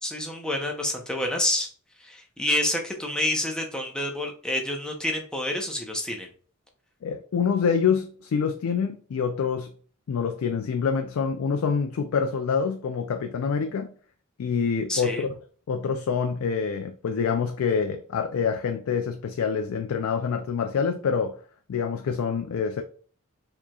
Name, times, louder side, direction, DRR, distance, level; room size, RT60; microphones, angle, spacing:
voice 1, 0.0-1.7 2.0-6.3 14.9-15.3, left 1 dB, 5° left, 0.7 m, -28 dB
voice 2, 7.0-9.7 10.1-13.9 14.4-15.3 15.7-21.4 21.7-22.8, left 6 dB, 90° left, 0.4 m, -26 dB
4.7 x 3.0 x 2.3 m
head